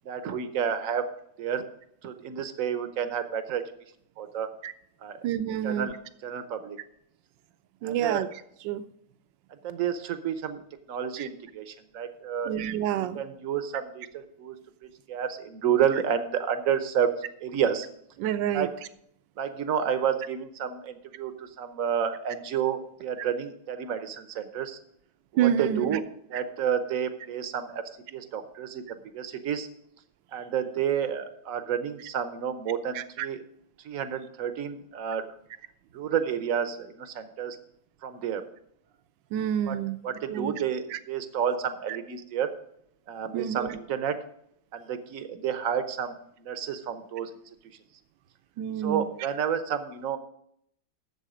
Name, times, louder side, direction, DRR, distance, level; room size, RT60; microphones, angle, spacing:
voice 1, 0.0-1.1 1.4-1.6 2.0-3.6 4.2-4.5 5.0-5.2 5.6-6.0 6.2-6.8 7.8-8.3 9.6-10.6 10.9-12.6 12.9-14.6 14.8-17.1 17.4-17.9 18.5-18.8 19.4-24.8 25.3-26.0 26.3-27.8 28.1-29.7 30.3-33.4 33.8-35.2 35.9-37.6 38.0-38.4 39.7-39.8 40.0-42.5 43.1-44.2 44.7-47.3 48.8-50.2, right 8 dB, 55° right, 10 dB, 1.0 m, -30 dB
voice 2, 5.2-5.9 7.8-8.3 8.6-8.8 11.2-11.3 12.5-13.2 18.2-18.7 25.4-26.0 26.3-26.4 32.9-33.3 39.3-40.0 40.3-40.6 40.9-41.0 43.3-43.7 48.6-49.1, right 10 dB, 75° right, 13 dB, 1.3 m, -28 dB
11.0 x 7.5 x 5.0 m, 0.72 s
omnidirectional pair, 2.1 m